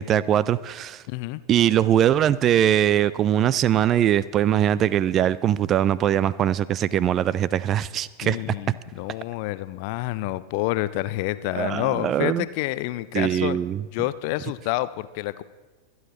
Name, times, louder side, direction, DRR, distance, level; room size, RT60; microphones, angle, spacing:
voice 1, 0.0-1.0 1.5-8.4 11.6-12.4 13.1-13.8, right 10 dB, 30° right, 19 dB, 0.3 m, -21 dB
voice 2, 1.1-1.4 8.2-13.6 13.9-15.4, left 17 dB, 45° left, 16 dB, 0.4 m, -28 dB
23.0 x 9.5 x 3.0 m, 1.2 s
figure-of-eight pair, 90°, 0 cm